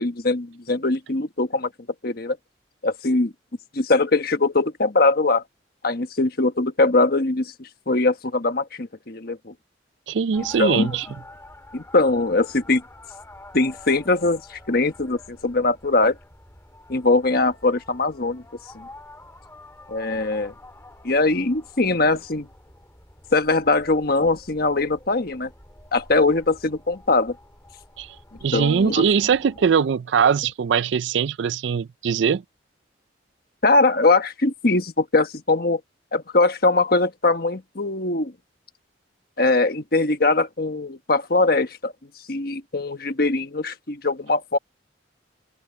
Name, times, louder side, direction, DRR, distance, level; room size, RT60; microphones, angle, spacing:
voice 1, 0.0-1.7 2.0-2.4 2.8-3.3 3.7-5.4 5.8-9.5 10.6-10.9 11.7-12.8 13.5-16.1 16.9-18.4 18.7-18.9 19.9-20.5 21.0-22.5 23.3-25.5 25.9-27.3 28.5-29.0 33.6-35.8 36.1-38.3 39.4-41.9 42.3-44.6, left 3 dB, 55° left, 1.4 m, -21 dB
voice 2, 10.1-11.1 28.0-28.1 28.4-32.4, right 6 dB, 70° right, 0.4 m, -21 dB
sound 1, 10.3-29.8, left 1 dB, 15° left, 3.6 m, -48 dB
open air
head